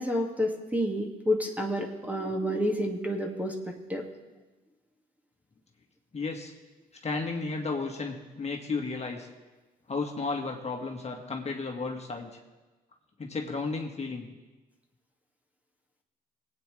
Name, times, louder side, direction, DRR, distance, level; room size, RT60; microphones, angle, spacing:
voice 1, 0.0-4.0, equal, 10° right, 1 dB, 2.1 m, -29 dB
voice 2, 6.1-6.5 7.0-9.3 9.9-12.3 13.2-14.3, left 4 dB, 35° left, 1 dB, 1.8 m, -33 dB
21.5 x 9.0 x 3.4 m, 1.2 s
hypercardioid pair, 55°, 19 cm